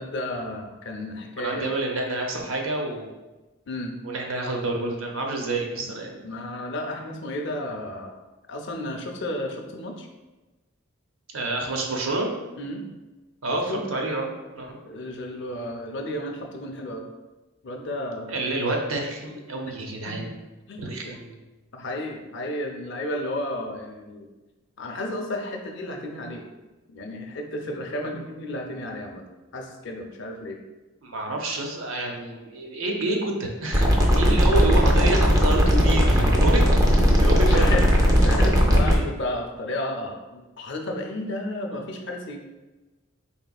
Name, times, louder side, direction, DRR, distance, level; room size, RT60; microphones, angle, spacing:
voice 1, 0.0-1.7 3.7-3.9 5.8-5.9 6.2-8.2 8.5-10.1 12.6-12.9 13.5-13.8 14.8-17.1 17.6-18.4 20.1-20.2 20.7-21.2 21.7-24.3 24.8-26.5 26.9-29.2 29.5-30.6 37.4-42.4, left 1 dB, 55° left, 2 dB, 0.5 m, -33 dB
voice 2, 1.4-3.1 4.0-6.2 11.3-12.3 13.4-14.3 14.5-14.8 18.3-20.3 20.8-21.4 31.0-33.9 34.2-36.7 37.2-37.9 38.8-39.1, right 2 dB, 75° right, 1 dB, 0.7 m, -28 dB
sound 1, 33.7-39.0, equal, 15° right, 0.4 m, -18 dB
4.2 x 3.5 x 2.3 m, 1.1 s
head